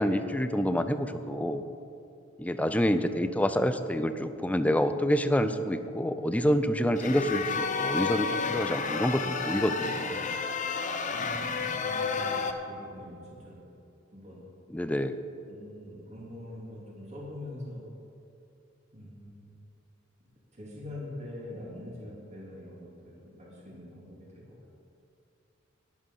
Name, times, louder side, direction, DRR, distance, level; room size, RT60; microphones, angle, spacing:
voice 1, 0.0-1.6 2.4-10.3 14.7-15.1, equal, 5° left, 10 dB, 0.5 m, -27 dB
sound 1, 7.0-12.5, left 5 dB, 40° left, 0.8 m, -31 dB
voice 2, 11.1-13.7 14.1-14.4 15.5-17.8 18.9-19.5 20.5-24.2 24.5-24.6, left 1 dB, 35° right, -4 dB, 3.1 m, -44 dB
12.5 x 10.5 x 5.7 m, 2.6 s
head